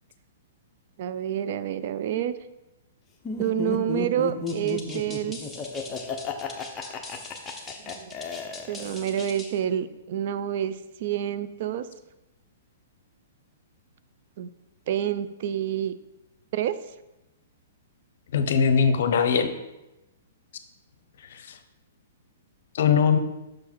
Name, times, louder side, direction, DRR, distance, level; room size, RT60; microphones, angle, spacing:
voice 1, 1.0-2.3 3.4-5.4 7.8-8.1 8.7-11.9 14.4-14.5 14.9-15.9 16.5-16.8, right 10 dB, 55° right, 13 dB, 0.4 m, -28 dB
Laughter, 3.2-9.2, left 5 dB, 25° left, 0.7 m, -33 dB
sound 1, 4.5-9.6, left 2 dB, 5° left, 0.9 m, -42 dB
voice 2, 18.3-19.5 22.7-23.2, left 6 dB, 65° left, 9 dB, 0.7 m, -20 dB
6.2 x 4.7 x 4.4 m, 0.96 s
hypercardioid pair, 135°, 0 cm